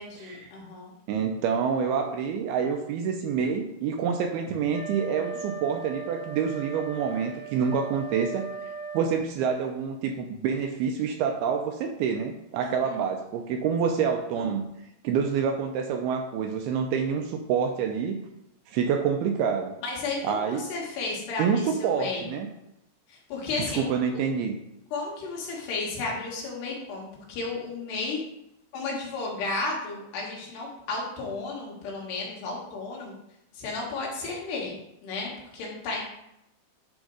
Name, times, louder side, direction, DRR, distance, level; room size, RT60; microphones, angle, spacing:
voice 1, 0.0-0.9 12.6-13.0 14.4-14.5 19.8-22.3 23.1-23.9 24.9-28.2 28.7-33.2 33.5-34.8 35.0-36.0, left 3 dB, 80° left, -3 dB, 3.8 m, -33 dB
voice 2, 1.1-8.5 8.9-14.6 15.0-18.2 18.7-19.8 20.2-20.6 21.4-22.5 23.6-24.6, right 6 dB, 85° right, 4 dB, 2.3 m, -27 dB
Wind instrument woodwind instrument, 4.7-9.1, right 5 dB, 45° left, 3.4 m, -38 dB
10.5 x 3.6 x 4.7 m, 0.83 s
omnidirectional pair, 4.8 m